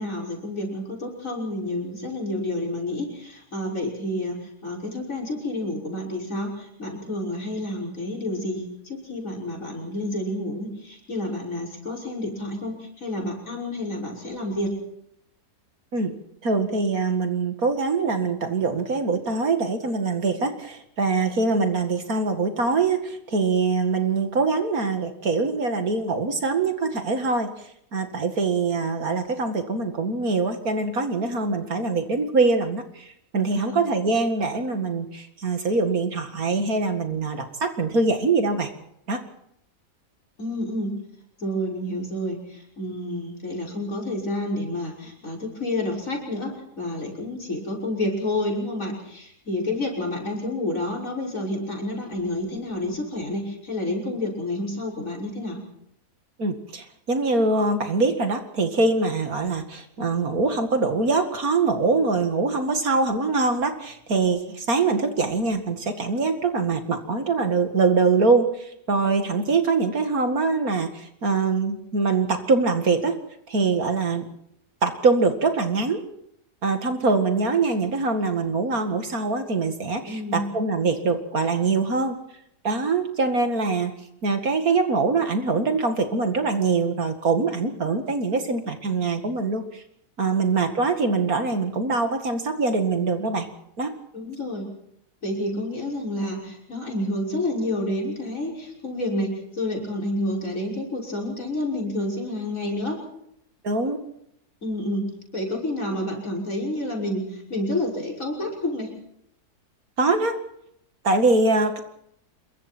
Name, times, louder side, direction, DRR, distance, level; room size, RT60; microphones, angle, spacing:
voice 1, 0.0-14.8 33.5-33.8 40.4-41.0 41.4-55.6 80.1-80.5 90.2-90.3 94.1-94.7 95.2-103.0 104.6-108.9, left 1 dB, 55° left, 2 dB, 6.4 m, -29 dB
voice 2, 16.4-27.5 27.9-38.7 39.1-39.2 56.4-73.2 73.5-74.2 74.8-76.0 76.6-82.1 82.6-83.9 84.2-89.8 90.2-93.5 93.8-93.9 103.6-104.0 110.0-110.4 111.0-111.8, right 3 dB, 65° right, 6 dB, 2.5 m, -23 dB
27.0 x 22.5 x 4.5 m, 0.74 s
omnidirectional pair, 1.7 m